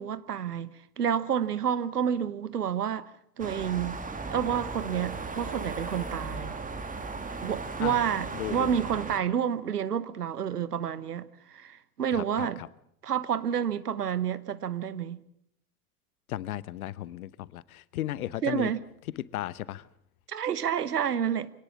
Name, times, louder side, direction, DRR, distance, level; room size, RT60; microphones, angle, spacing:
voice 1, 0.0-3.1 3.4-4.0 4.3-6.6 7.4-12.6 13.0-15.2 18.4-18.8 20.3-21.5, right 8 dB, 85° right, 1.2 m, -29 dB
sound 1, 3.4-9.2, right 3 dB, 15° right, 2.4 m, -36 dB
voice 2, 8.3-8.8 12.1-12.7 16.3-18.7 19.2-19.9, left 14 dB, 70° left, 1.0 m, -35 dB
25.0 x 18.0 x 7.2 m
figure-of-eight pair, 80°, 46 cm